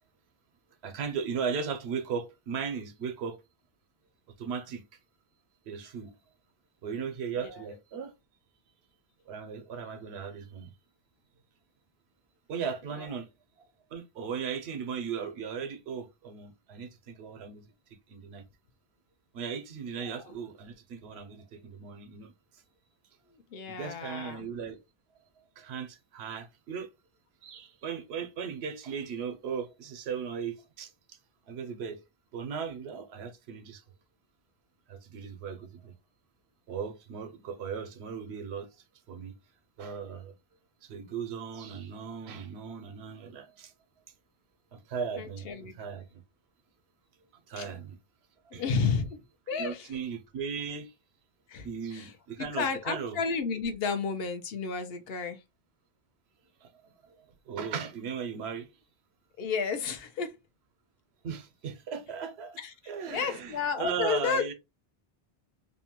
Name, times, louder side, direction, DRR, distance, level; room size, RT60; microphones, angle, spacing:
voice 1, 0.8-3.4 4.4-4.9 5.7-6.1 6.8-8.1 9.3-10.7 12.5-13.3 13.9-17.7 18.1-18.4 19.3-22.3 23.7-24.8 25.6-26.9 27.4-31.2 31.5-32.0 32.3-33.8 34.9-35.9 36.7-38.7 39.1-39.4 39.8-40.3 40.8-43.7 44.7-46.2 47.5-48.0 48.4-48.6 49.5-50.9 51.6-53.2 56.6-56.7 57.0-58.7 61.2-62.6 62.9-64.5, right 6 dB, 90° right, 0.9 m, -37 dB
voice 2, 7.3-7.6 20.0-20.3 23.3-24.5 45.2-45.8 47.5-47.7 48.5-49.9 51.5-52.1 52.4-55.4 59.4-60.3 62.6-62.7 63.0-64.5, left 5 dB, 70° left, 0.8 m, -32 dB
2.8 x 2.1 x 2.8 m
omnidirectional pair, 1.0 m